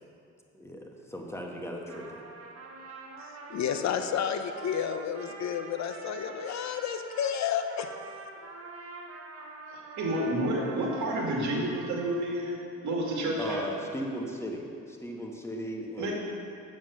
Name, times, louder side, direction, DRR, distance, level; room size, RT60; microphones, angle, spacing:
voice 1, 0.5-2.2 13.4-16.1, equal, 10° left, 0 dB, 1.3 m, -37 dB
Trumpet, 1.7-12.6, right 3 dB, 50° right, 1.3 m, -45 dB
voice 2, 3.2-7.9, left 8 dB, 65° left, 8 dB, 0.7 m, -31 dB
voice 3, 9.7-13.6 16.0-16.1, right 1 dB, 70° right, -2 dB, 2.3 m, -30 dB
7.5 x 7.3 x 6.4 m, 2.4 s
cardioid pair, 90°, 30 cm